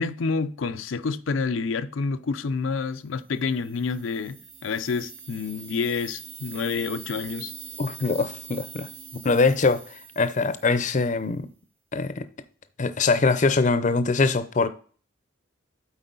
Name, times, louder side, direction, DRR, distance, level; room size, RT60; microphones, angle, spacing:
voice 1, 0.0-7.5, left 4 dB, 90° left, 0.5 m, -28 dB
sound 1, 3.3-11.2, right 6 dB, 70° right, 2.9 m, -43 dB
voice 2, 7.8-8.9 9.2-11.5 11.9-12.3 12.8-14.7, left 4 dB, 40° left, 0.6 m, -23 dB
8.0 x 4.6 x 3.8 m
head